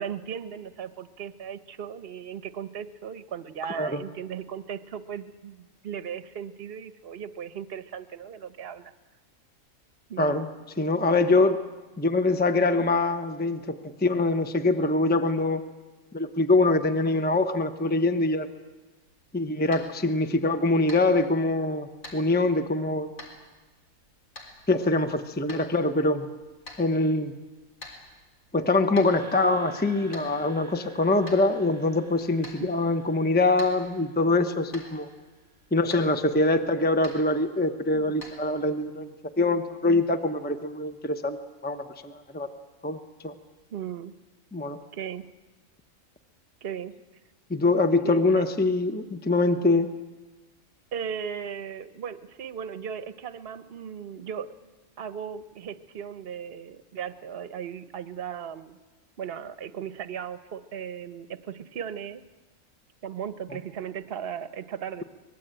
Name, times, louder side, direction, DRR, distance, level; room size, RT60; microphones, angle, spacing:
voice 1, 0.0-8.9 10.1-10.4 32.6-32.7 37.9-38.1 43.7-44.1 44.9-45.3 46.6-46.9 48.0-48.4 50.9-54.5 55.0-58.8 59.2-62.2 63.0-65.0, right 8 dB, 50° right, 12 dB, 1.1 m, -37 dB
voice 2, 10.2-10.5 10.8-11.6 12.0-15.6 16.1-18.5 19.3-23.1 24.7-26.2 26.8-27.3 28.5-35.1 35.7-39.1 39.4-41.4 41.6-42.5 42.8-43.0 43.2-43.3 44.5-44.8 47.5-49.9, left 2 dB, 10° left, 8 dB, 0.8 m, -24 dB
sound 1, 19.0-38.9, left 1 dB, 85° left, 4.5 m, -50 dB
sound 2, 29.1-35.5, right 1 dB, 45° left, 3.4 m, -49 dB
24.5 x 20.0 x 9.0 m, 1.2 s
omnidirectional pair, 1.4 m